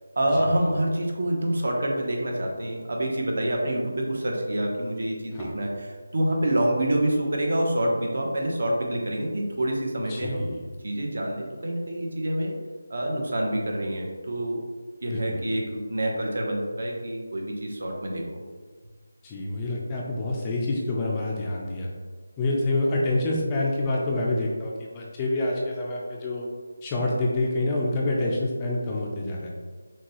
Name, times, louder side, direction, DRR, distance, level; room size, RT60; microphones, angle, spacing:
voice 1, 0.1-10.6 10.8-12.5 12.9-14.6 15.0-18.4, right 1 dB, 60° right, 0 dB, 0.9 m, -27 dB
voice 2, 10.1-10.6 15.1-15.5 19.2-21.9 22.4-26.5 26.8-29.5, left 2 dB, 15° left, -3 dB, 0.4 m, -27 dB
6.1 x 2.3 x 3.0 m, 1.5 s
figure-of-eight pair, 170°, 0 cm